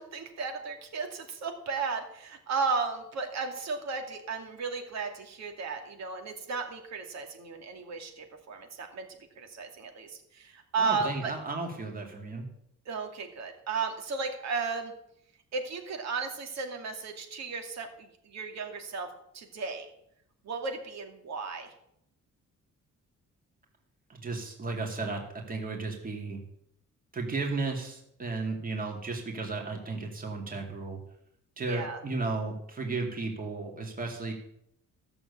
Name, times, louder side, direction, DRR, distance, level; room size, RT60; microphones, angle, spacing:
voice 1, 0.0-9.1 9.4-11.3 12.9-14.9 15.5-19.9 20.4-21.7 31.6-32.0, right 4 dB, 60° right, 4 dB, 2.5 m, -34 dB
voice 2, 10.8-12.5 24.1-25.2 25.5-26.4 27.1-31.0 31.6-34.3, right 3 dB, 30° right, 1 dB, 2.5 m, -34 dB
15.5 x 7.1 x 8.3 m, 0.75 s
cardioid pair, 170°, 31 cm